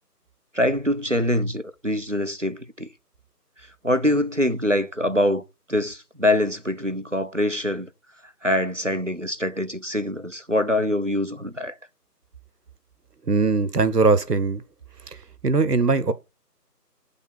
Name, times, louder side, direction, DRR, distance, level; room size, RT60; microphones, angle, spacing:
voice 1, 0.5-2.9 3.8-5.4 5.7-7.9 8.4-11.7, left 1 dB, 55° right, 0.5 m, -24 dB
voice 2, 13.3-14.6 15.4-16.1, right 4 dB, 75° right, 0.9 m, -20 dB
7.4 x 3.4 x 4.3 m
figure-of-eight pair, 180°, 48 cm